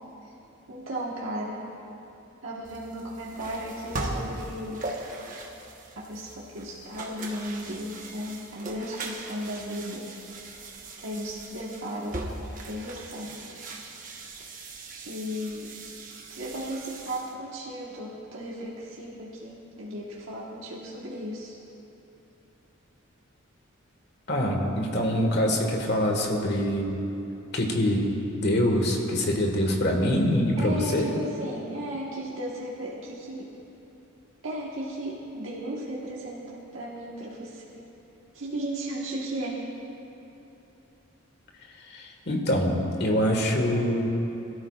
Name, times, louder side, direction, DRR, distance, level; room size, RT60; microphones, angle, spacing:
voice 1, 0.7-1.6 2.4-4.8 5.9-10.0 11.0-12.1 12.6-13.7 14.4-14.5 15.0-15.7 16.3-21.6 30.6-33.5 34.4-37.8 38.3-39.6, equal, 85° right, -5 dB, 1.4 m, -35 dB
sound 1, 2.6-17.3, right 2 dB, 40° right, 1.2 m, -39 dB
voice 2, 24.3-27.0 27.5-31.1 41.9-44.1, equal, 55° left, 1 dB, 1.6 m, -25 dB
21.5 x 13.0 x 2.4 m, 2.9 s
head